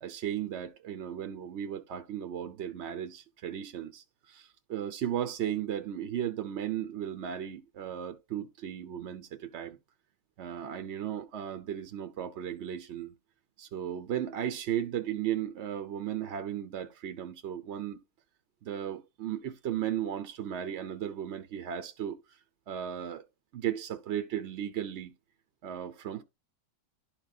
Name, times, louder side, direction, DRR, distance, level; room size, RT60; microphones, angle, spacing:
voice 1, 0.0-9.8 10.4-13.1 13.6-18.0 18.6-22.4 22.7-23.3 23.5-25.1 25.6-26.2, right 10 dB, 60° right, 0.7 m, -35 dB
11.5 x 4.5 x 2.4 m
omnidirectional pair, 1.9 m